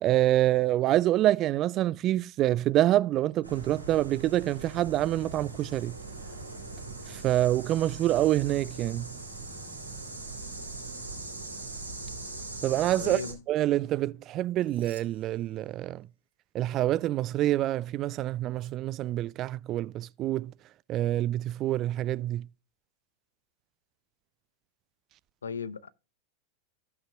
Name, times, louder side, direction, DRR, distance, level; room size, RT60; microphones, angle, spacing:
voice 1, 0.0-5.9 7.1-9.1 12.6-13.2 13.5-16.1 16.5-20.5 20.9-22.5, right 14 dB, 35° right, 0.3 m, -26 dB
sound 1, 3.4-13.3, right 3 dB, 90° right, 2.9 m, -41 dB
voice 2, 13.0-13.4 25.4-25.9, left 6 dB, 70° left, 0.4 m, -36 dB
sound 2, 14.3-16.3 16.6-16.9 18.5-18.7, right 5 dB, 65° right, 2.7 m, -57 dB
15.5 x 5.6 x 2.3 m
figure-of-eight pair, 90°, 0 cm